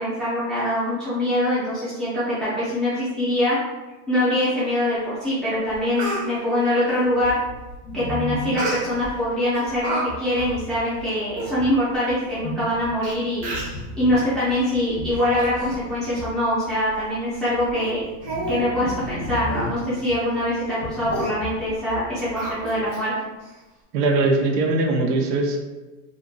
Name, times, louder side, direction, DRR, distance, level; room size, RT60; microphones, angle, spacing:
voice 1, 0.0-3.6 4.1-7.3 7.9-13.5 13.9-18.1 18.5-23.3, left 1 dB, ahead, -11 dB, 0.3 m, -23 dB
Speech, 5.3-5.4 5.7-6.3 8.6-9.1 9.5-10.0 10.4-10.5 11.1-11.2 11.4-11.5 12.3-12.4 13.0-13.1 13.4-13.8 14.5-14.7 15.1-15.8 16.1-16.3 16.7-16.8 17.3-17.5 17.8-17.9 18.2-18.6 18.9-19.1 19.5-19.7 20.0-20.2 20.5-20.7 21.1-21.3 22.4-23.0 23.4-23.5, right 2 dB, 40° right, 0.7 m, -31 dB
sound 1, 7.2-22.9, left 1 dB, 65° left, 0.6 m, -36 dB
voice 2, 23.9-25.6, right 2 dB, 80° right, 2 dB, 0.7 m, -20 dB
2.5 x 2.2 x 2.5 m, 1.2 s
supercardioid pair, 135°, 48 cm